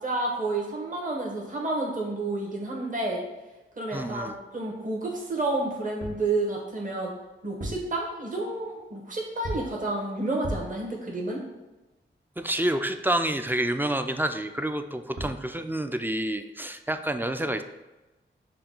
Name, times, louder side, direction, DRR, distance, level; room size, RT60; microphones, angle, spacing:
voice 1, 0.0-3.2 3.8-7.1 7.4-11.4, right 2 dB, 40° right, -2 dB, 1.0 m, -30 dB
voice 2, 3.9-4.4 12.4-17.6, right 1 dB, 10° right, 8 dB, 0.3 m, -28 dB
sound 1, 6.0-6.3 7.4-8.0 9.4-9.8 10.4-10.8 14.9-15.0 15.2-15.5, right 1 dB, 60° right, 1.0 m, -35 dB
5.6 x 2.3 x 3.8 m, 1.1 s
cardioid pair, 55°, 21 cm